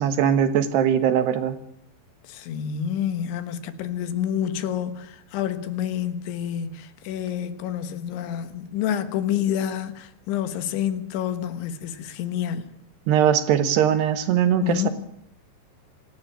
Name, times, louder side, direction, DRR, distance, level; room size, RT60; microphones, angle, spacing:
voice 1, 0.0-1.6 13.1-14.9, right 9 dB, 70° right, 3.0 m, -20 dB
voice 2, 2.3-12.7 14.6-14.9, left 9 dB, 75° left, 3.6 m, -28 dB
27.0 x 12.5 x 8.8 m
omnidirectional pair, 5.6 m